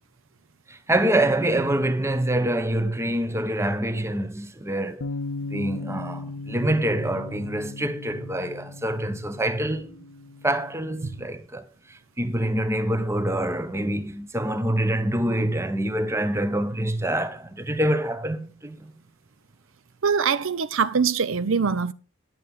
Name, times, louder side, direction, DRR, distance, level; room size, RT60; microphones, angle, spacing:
voice 1, 0.7-5.1 5.5-10.0 10.4-11.6 12.2-18.9, right 1 dB, 15° right, 0.9 m, -26 dB
Bass guitar, 5.0-11.3, left 3 dB, 85° left, 0.6 m, -37 dB
voice 2, 20.0-21.9, right 6 dB, 70° right, 0.6 m, -23 dB
9.9 x 7.8 x 5.2 m
head